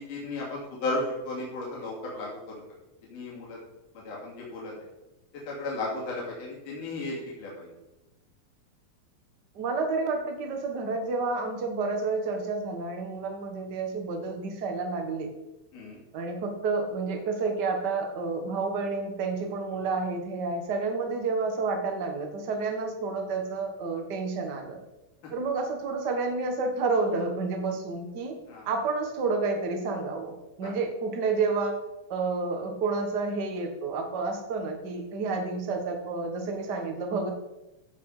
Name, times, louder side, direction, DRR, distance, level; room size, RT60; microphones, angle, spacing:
voice 1, 0.0-2.6 3.1-3.6 3.9-4.7 5.5-7.7 15.7-16.0 28.5-28.7 30.6-30.7, left 2 dB, 60° left, -4 dB, 4.2 m, -34 dB
voice 2, 9.5-15.3 16.1-24.8 25.3-28.3 28.6-31.7 32.1-37.3, right 4 dB, 60° right, 4 dB, 1.1 m, -30 dB
15.0 x 6.0 x 5.0 m, 0.96 s
omnidirectional pair, 4.4 m